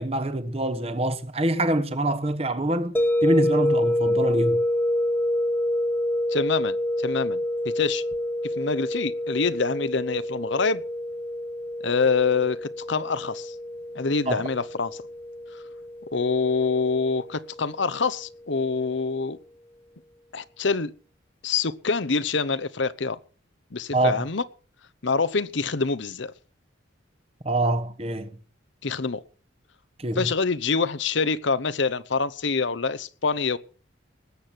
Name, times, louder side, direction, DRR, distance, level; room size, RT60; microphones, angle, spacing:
voice 1, 0.0-2.9 3.2-4.6 14.3-14.4 23.9-24.2 27.4-28.3 30.0-30.3, right 1 dB, 30° right, 1.2 m, -25 dB
sound 1, 3.0-17.9, left 1 dB, 10° left, 0.9 m, -27 dB
voice 2, 6.3-7.4 7.7-8.0 8.6-10.8 11.8-13.5 13.9-14.9 16.1-19.4 20.3-20.9 21.4-23.2 23.7-24.4 25.0-26.3 28.8-29.2 30.2-33.6, left 4 dB, 70° left, 0.9 m, -25 dB
20.0 x 8.6 x 6.0 m
head